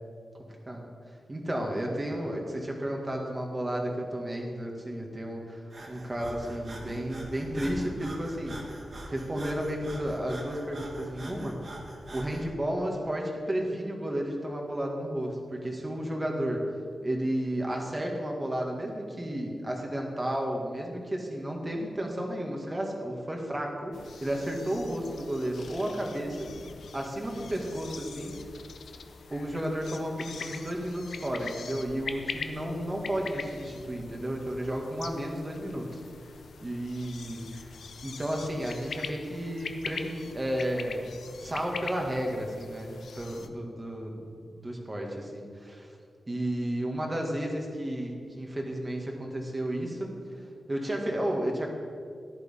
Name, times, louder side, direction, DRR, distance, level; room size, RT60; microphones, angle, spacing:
voice 1, 1.3-8.6 9.1-11.5 12.1-16.6 17.0-23.9 24.2-26.5 26.9-28.3 29.3-36.0 36.6-37.7 38.0-41.0 41.4-45.9 46.3-50.4 50.7-51.7, right 1 dB, 25° right, 0 dB, 2.2 m, -32 dB
Breathing, 5.7-12.5, right 1 dB, 55° right, 2.2 m, -43 dB
sound 1, 23.9-43.5, left 5 dB, 90° left, 0.7 m, -43 dB
14.0 x 11.0 x 3.9 m, 2.3 s
wide cardioid pair, 90°, 0 cm